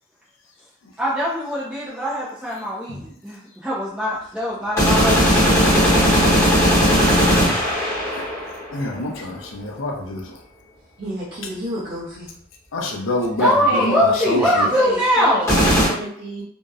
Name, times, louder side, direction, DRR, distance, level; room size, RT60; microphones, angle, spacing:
voice 1, 1.0-6.0 13.4-15.6, equal, 5° right, -8 dB, 0.4 m, -22 dB
sound 1, 4.8-8.8 15.5-15.9, equal, 15° left, 0.8 m, -17 dB
voice 2, 8.7-10.2 12.7-13.5 13.8-14.7, left 2 dB, 65° left, 1 dB, 0.5 m, -25 dB
voice 3, 11.0-12.3 13.4-16.4, right 1 dB, 50° right, -9 dB, 0.6 m, -30 dB
2.7 x 2.0 x 2.3 m, 0.63 s
head